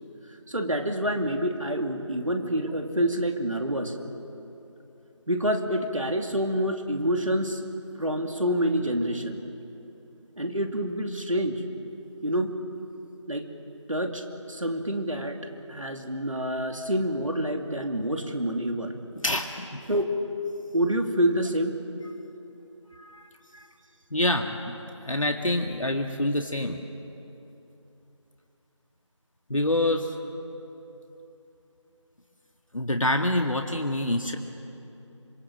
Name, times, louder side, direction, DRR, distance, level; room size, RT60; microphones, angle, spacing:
voice 1, 0.5-4.0 5.3-7.6 8.0-9.4 10.4-11.6 12.2-12.5 13.3-13.5 13.9-15.4 15.7-18.9 19.9-20.1 20.7-21.8 23.5-23.7, equal, 85° right, 4 dB, 2.7 m, -27 dB
voice 2, 19.2-19.8 23.0-23.3 24.1-24.8 25.1-26.8 29.5-30.2 32.7-34.4, left 1 dB, 90° left, 4 dB, 1.8 m, -26 dB
26.5 x 23.5 x 7.7 m, 2.9 s
figure-of-eight pair, 170°, 16 cm